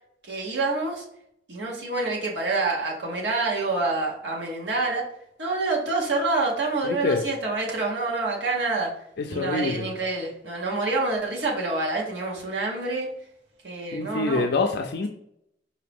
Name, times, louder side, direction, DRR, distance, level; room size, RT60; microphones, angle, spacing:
voice 1, 0.2-1.0 1.5-5.1 5.4-8.9 9.3-13.1 13.6-14.4, right 3 dB, 75° right, -2 dB, 1.1 m, -27 dB
voice 2, 6.8-7.2 9.2-9.9 13.9-15.1, left 3 dB, 60° left, 3 dB, 0.4 m, -26 dB
4.9 x 2.7 x 3.4 m, 0.73 s
head